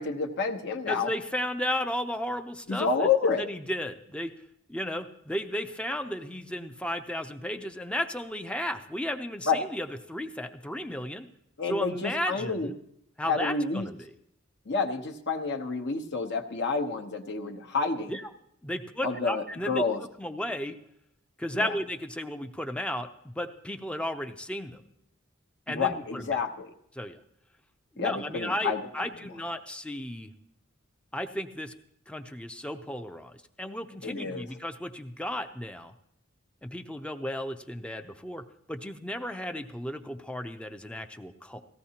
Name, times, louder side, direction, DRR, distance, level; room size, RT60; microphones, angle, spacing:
voice 1, 0.0-1.1 2.7-3.4 9.5-9.6 11.6-12.7 13.2-13.9 14.7-18.2 19.0-20.0 21.5-21.7 25.7-26.7 28.0-28.8 34.0-34.5, left 4 dB, 55° left, 3 dB, 0.9 m, -29 dB
voice 2, 0.9-4.3 4.7-11.3 11.6-12.8 13.2-14.1 18.1-18.3 18.6-19.8 20.2-20.8 21.4-24.8 25.7-26.4 26.9-27.2 27.9-30.3 31.1-31.7 32.1-35.9 36.6-38.4 38.7-41.6, equal, 5° left, 7 dB, 0.5 m, -34 dB
18.0 x 15.0 x 2.9 m, 0.74 s
head